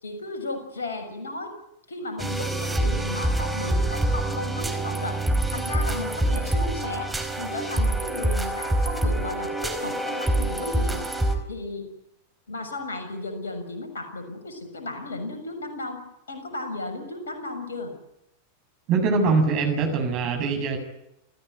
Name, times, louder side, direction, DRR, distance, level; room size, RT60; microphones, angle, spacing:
voice 1, 0.0-1.5 1.9-5.2 5.5-7.1 7.4-11.0 11.5-11.9 12.5-16.0 16.3-17.9, left 2 dB, 70° left, 6 dB, 6.7 m, -34 dB
sound 1, 2.2-11.3, right 1 dB, 5° right, 4.4 m, -26 dB
voice 2, 18.9-20.8, right 4 dB, 40° right, 5 dB, 7.7 m, -23 dB
29.0 x 15.5 x 9.4 m, 0.83 s
figure-of-eight pair, 90°, 0 cm